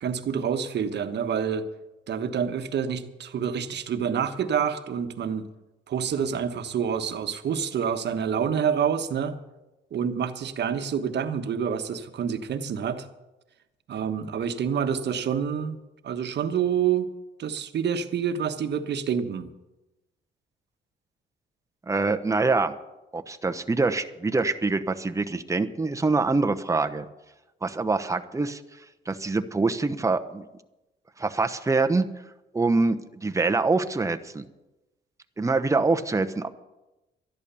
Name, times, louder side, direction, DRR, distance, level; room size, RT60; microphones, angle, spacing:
voice 1, 0.0-1.7 2.1-5.5 5.9-9.4 9.9-13.1 13.9-15.8 16.0-17.1 17.4-19.5, right 7 dB, 60° right, 8 dB, 1.3 m, -27 dB
voice 2, 21.9-22.7 23.1-27.1 27.6-28.6 29.1-30.4 31.2-32.1 32.5-34.4 35.4-36.5, right 3 dB, 15° right, 7 dB, 0.9 m, -25 dB
12.5 x 11.5 x 7.0 m, 1.0 s
cardioid pair, 90°, 20 cm